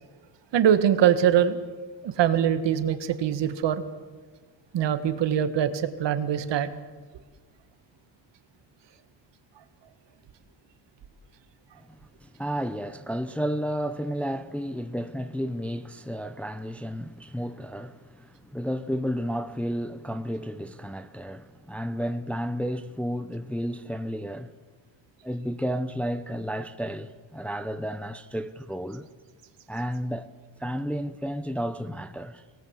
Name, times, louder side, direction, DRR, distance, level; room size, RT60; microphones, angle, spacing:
voice 1, 0.5-1.6 2.0-3.8 4.7-6.7, right 9 dB, 65° right, 1.8 m, -23 dB
voice 2, 11.9-24.5 25.2-29.1 29.7-30.3 30.6-32.6, equal, 5° left, 0.6 m, -32 dB
24.5 x 18.5 x 8.2 m
cardioid pair, 155°, 47 cm